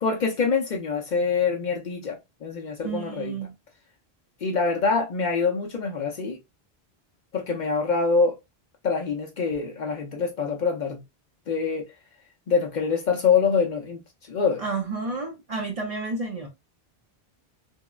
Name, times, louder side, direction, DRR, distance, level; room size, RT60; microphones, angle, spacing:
voice 1, 0.0-3.4 4.4-6.4 7.3-8.4 8.8-11.0 11.5-11.9 12.5-14.6, left 5 dB, 55° left, 0.6 m, -25 dB
voice 2, 2.8-3.5 14.6-16.5, right 3 dB, 45° right, 0.5 m, -31 dB
3.6 x 2.0 x 2.3 m
omnidirectional pair, 1.0 m